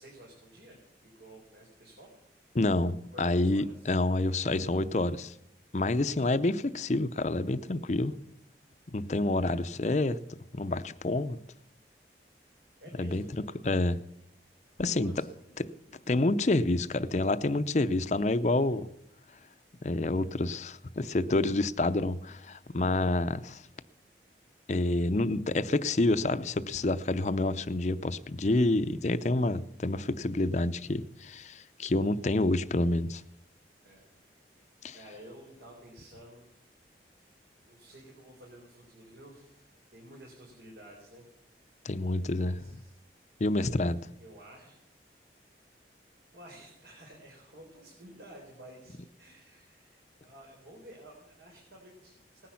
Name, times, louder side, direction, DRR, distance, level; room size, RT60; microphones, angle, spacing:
voice 1, 0.0-2.1 3.1-3.9 9.4-9.6 12.8-13.3 14.8-15.9 33.8-34.1 34.9-36.6 37.1-41.3 42.4-43.0 44.2-44.8 45.3-45.5 46.3-52.5, right 1 dB, 80° right, 4.0 m, -52 dB
voice 2, 2.5-5.3 5.7-8.1 8.9-10.2 10.5-11.4 13.0-14.0 14.8-15.2 15.6-15.7 16.1-18.9 19.8-23.6 24.7-33.2 34.8-35.0 41.8-42.6 43.4-44.0, left 2 dB, 40° left, 0.6 m, -28 dB
18.5 x 10.5 x 5.8 m
head